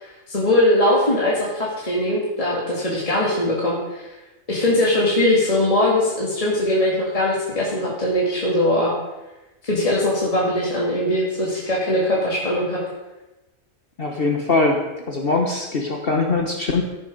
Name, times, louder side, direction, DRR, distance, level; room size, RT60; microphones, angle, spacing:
voice 1, 0.0-4.1 4.5-8.9 9.6-12.8, left 1 dB, 25° left, -5 dB, 2.1 m, -21 dB
voice 2, 14.0-14.8 15.1-16.8, left 3 dB, 45° left, 1 dB, 1.3 m, -21 dB
14.5 x 6.9 x 5.2 m, 1.0 s
omnidirectional pair, 1.4 m